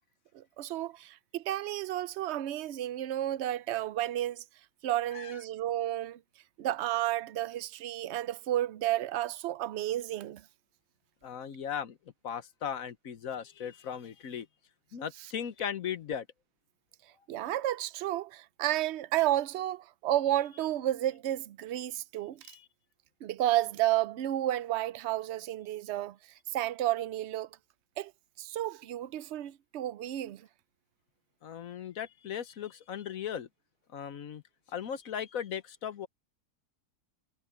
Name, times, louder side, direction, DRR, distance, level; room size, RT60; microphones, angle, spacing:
voice 1, 0.3-4.4 4.8-6.2 6.6-10.4 17.3-22.4 23.2-26.2 26.5-27.5 28.0-28.1 28.4-30.5, right 13 dB, 70° right, 0.6 m, -31 dB
voice 2, 11.2-12.0 12.2-14.5 14.9-16.3 22.4-22.6 31.4-33.5 33.9-34.4 34.7-36.1, left 8 dB, 60° left, 1.3 m, -37 dB
omnidirectional pair, 1.7 m